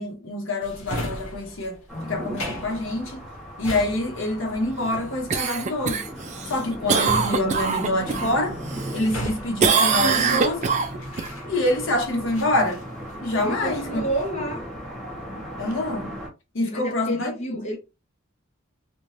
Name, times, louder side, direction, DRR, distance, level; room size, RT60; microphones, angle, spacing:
voice 1, 0.0-3.2 3.6-6.1 6.5-8.6 8.9-10.7 11.4-12.8 13.2-14.0 14.4-14.5 15.4-16.2 16.5-17.7, left 1 dB, 65° left, 0.9 m, -26 dB
Drawer open or close, 0.6-11.9 12.3-13.6 13.9-14.5, equal, 90° left, 1.1 m, -37 dB
sound 1, 1.9-16.3, equal, ahead, 1.0 m, -37 dB
Cough, 5.3-8.3 8.7-9.3 9.6-11.3 15.7-15.8, right 5 dB, 35° right, 0.4 m, -23 dB
voice 2, 13.4-14.7 16.7-17.8, right 1 dB, 35° left, 0.6 m, -29 dB
2.6 x 2.2 x 3.1 m
head